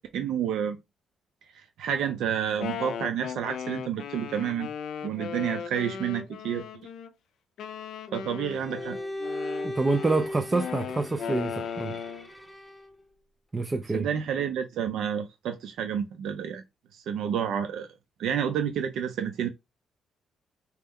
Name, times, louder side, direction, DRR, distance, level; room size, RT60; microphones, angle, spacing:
voice 1, 0.1-0.8 1.5-4.7 5.0-6.6 8.1-9.0 13.9-16.6 16.9-17.9 18.2-19.5, right 8 dB, 80° right, 0.5 m, -29 dB
Wind instrument woodwind instrument, 2.4-7.1 7.6-12.3, left 7 dB, 70° left, 0.4 m, -37 dB
Bowed string instrument, 8.5-13.0, left 1 dB, 5° left, 0.7 m, -38 dB
voice 2, 9.6-12.0 13.5-14.1, right 3 dB, 20° right, 0.3 m, -27 dB
4.3 x 2.1 x 3.5 m
cardioid pair, 130°, 0 cm